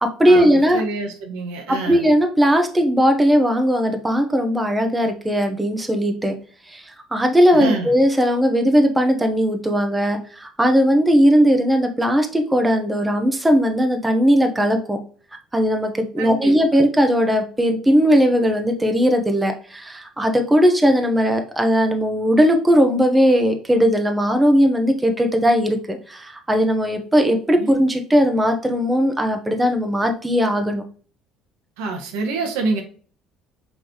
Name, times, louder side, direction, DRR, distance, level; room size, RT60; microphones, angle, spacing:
voice 1, 0.0-0.8 1.7-6.3 6.7-15.0 15.5-30.8, equal, 10° right, 4 dB, 1.0 m, -18 dB
voice 2, 0.7-2.0 7.5-7.9 16.2-16.5 27.6-27.8 31.8-32.8, right 3 dB, 75° right, 3 dB, 1.1 m, -26 dB
5.3 x 3.2 x 2.9 m, 0.42 s
hypercardioid pair, 60°, 0 cm